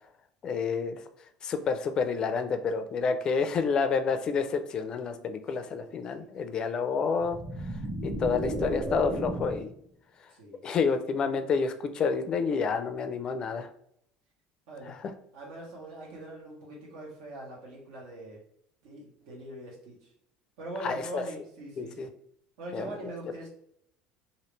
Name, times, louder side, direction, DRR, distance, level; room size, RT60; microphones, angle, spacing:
voice 1, 0.4-1.0 1.4-7.4 8.0-9.7 10.6-13.7 14.9-15.0 20.8-21.2 21.8-22.1 22.7-23.0, left 5 dB, 35° left, 8 dB, 0.4 m, -29 dB
voice 2, 5.6-6.3 10.3-10.6 14.7-15.0 15.3-18.4 18.8-20.0 20.6-22.1 22.6-23.5, right 2 dB, 85° right, -2 dB, 1.5 m, -42 dB
sound 1, 7.2-9.7, right 1 dB, 20° right, 0.7 m, -33 dB
3.0 x 2.8 x 3.2 m, 0.68 s
cardioid pair, 135°, 2 cm